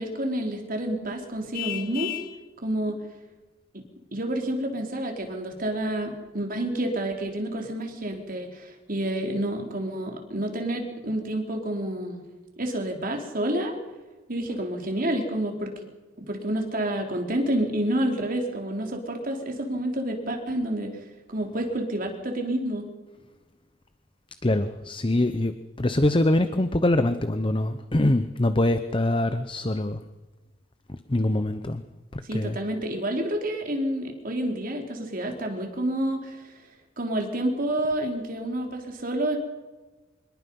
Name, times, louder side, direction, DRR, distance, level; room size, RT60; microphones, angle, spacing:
voice 1, 0.0-2.1 2.6-3.0 4.1-12.2 12.6-13.7 14.3-15.7 16.2-20.9 21.3-22.9 32.3-36.4 37.0-39.4, right 1 dB, 50° right, 2 dB, 3.8 m, -29 dB
Vehicle horn car horn honking, 1.5-2.4, left 15 dB, 50° left, 1.5 m, -33 dB
voice 2, 24.4-30.0 30.9-31.8 32.1-32.6, left 1 dB, 25° left, 10 dB, 0.9 m, -24 dB
26.0 x 21.5 x 5.5 m, 1.2 s
head